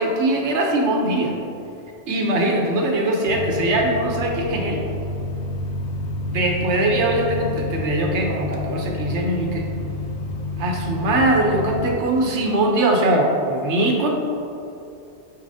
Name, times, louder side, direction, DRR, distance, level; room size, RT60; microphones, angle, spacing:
voice 1, 0.0-1.3 2.1-4.8 6.3-9.7 10.6-14.1, right 2 dB, 85° right, 1 dB, 1.1 m, -21 dB
sound 1, 3.3-11.9, left 3 dB, 75° left, 1.0 m, -29 dB
9.7 x 4.6 x 2.7 m, 2.7 s
omnidirectional pair, 1.1 m